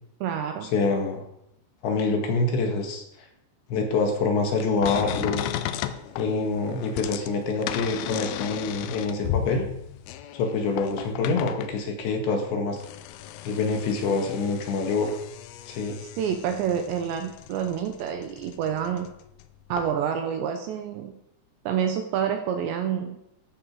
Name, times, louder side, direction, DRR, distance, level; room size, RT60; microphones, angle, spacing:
voice 1, 0.2-0.7 16.0-19.1 19.7-21.1 21.7-23.2, right 8 dB, 75° right, 6 dB, 2.8 m, -28 dB
voice 2, 0.7-1.2 1.8-3.0 3.7-5.4 6.2-9.7 10.3-12.8 13.5-15.2 15.7-16.0, left 3 dB, 65° left, 4 dB, 3.8 m, -26 dB
sound 1, 4.6-11.8 12.5-19.5 19.7-19.9, left 12 dB, 85° left, 3.2 m, -35 dB
15.0 x 12.0 x 4.9 m, 0.80 s
omnidirectional pair, 6.0 m